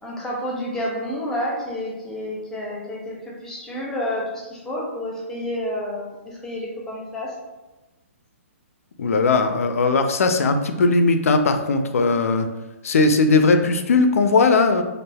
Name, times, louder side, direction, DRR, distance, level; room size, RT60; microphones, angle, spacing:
voice 1, 0.0-7.4, left 1 dB, 5° left, -4 dB, 0.6 m, -29 dB
voice 2, 9.0-12.5 12.8-14.8, left 3 dB, 80° left, 7 dB, 0.4 m, -18 dB
3.3 x 2.4 x 2.2 m, 1.1 s
hypercardioid pair, 150°, 8 cm